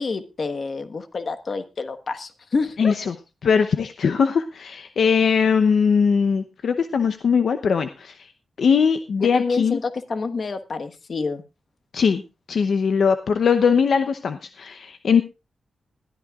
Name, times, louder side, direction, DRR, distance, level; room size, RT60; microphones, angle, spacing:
voice 1, 0.0-3.0 9.2-11.4, left 4 dB, 50° left, 9 dB, 1.4 m, -28 dB
voice 2, 2.8-3.1 3.4-8.3 8.6-9.8 11.9-12.2 12.5-15.2, left 6 dB, 70° left, 9 dB, 0.8 m, -20 dB
20.5 x 13.5 x 2.4 m, 0.29 s
wide cardioid pair, 115°, 0 cm